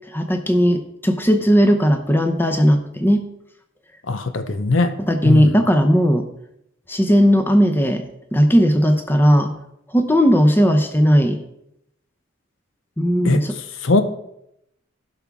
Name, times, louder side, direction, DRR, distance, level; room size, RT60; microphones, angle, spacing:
voice 1, 0.1-3.2 5.1-6.3 6.9-8.0 8.3-9.5 9.9-11.4 13.0-13.5, equal, 10° left, 0.7 m, -16 dB
voice 2, 4.1-4.9 5.2-5.6 13.2-14.0, left 3 dB, 75° left, 0.7 m, -20 dB
16.0 x 6.0 x 3.5 m
head